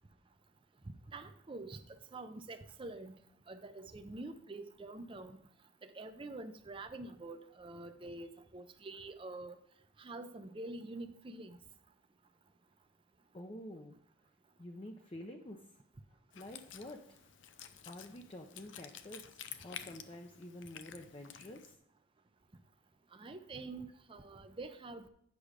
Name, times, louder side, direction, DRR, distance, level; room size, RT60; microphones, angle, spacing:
voice 1, 1.1-1.8 2.1-3.2 3.5-5.4 5.9-9.6 10.0-11.6 23.1-25.1, right 2 dB, 30° right, 8 dB, 0.6 m, -46 dB
voice 2, 13.3-14.0 14.6-15.7 16.3-17.2 17.9-21.8, left 1 dB, 30° left, 2 dB, 0.6 m, -49 dB
Wind instrument woodwind instrument, 16.3-21.8, left 9 dB, 85° left, 0.6 m, -51 dB
8.4 x 6.1 x 5.0 m, 0.71 s
head